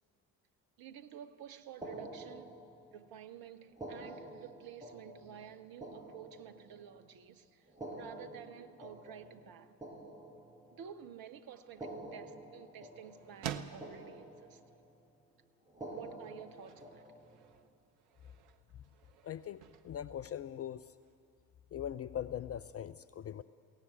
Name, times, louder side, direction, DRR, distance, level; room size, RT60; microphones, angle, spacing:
voice 1, 0.8-2.6 2.9-7.6 8.0-9.8 10.7-14.6 15.8-17.0, right 9 dB, 45° right, 1.2 m, -51 dB
sound 1, 1.8-3.1 3.7-7.0 7.7-11.0 11.7-13.5 13.8-14.9 15.7-17.5, right 1 dB, 10° right, 6.5 m, -49 dB
sound 2, 11.4-21.2, right 9 dB, 65° right, 1.0 m, -51 dB
voice 2, 19.2-20.9 21.7-23.4, left 10 dB, 30° left, 0.5 m, -41 dB
22.0 x 17.5 x 8.0 m
figure-of-eight pair, 50°, 48 cm